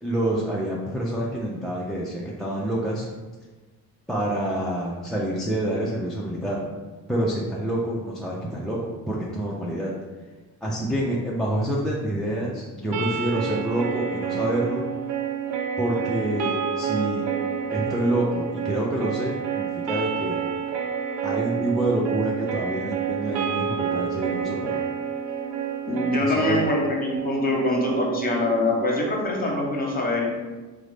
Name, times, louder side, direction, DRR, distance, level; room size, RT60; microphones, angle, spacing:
voice 1, 0.0-3.1 4.1-6.6 7.1-8.8 9.1-9.9 10.6-14.8 15.8-17.2 17.7-20.4 21.2-24.8 26.2-26.6, right 1 dB, ahead, -6 dB, 0.3 m, -27 dB
plucked Rickenbacker, 12.9-29.0, right 7 dB, 60° right, 0.6 m, -29 dB
voice 2, 25.8-30.3, left 2 dB, 20° left, -1 dB, 1.0 m, -24 dB
3.6 x 2.1 x 3.2 m, 1.2 s
hypercardioid pair, 55°, 49 cm